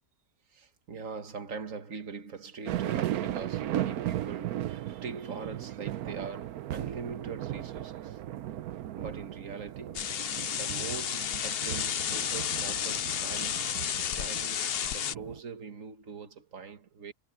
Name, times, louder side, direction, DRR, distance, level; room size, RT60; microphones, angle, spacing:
voice 1, 0.5-8.2 8.9-10.1 10.5-13.7 14.2-17.1, right 5 dB, 60° right, 2.1 m, -42 dB
sound 1, 2.7-15.4, right 12 dB, 85° right, 1.2 m, -36 dB
sound 2, 9.9-15.1, left 9 dB, 55° left, 0.7 m, -32 dB
omnidirectional pair, 1.5 m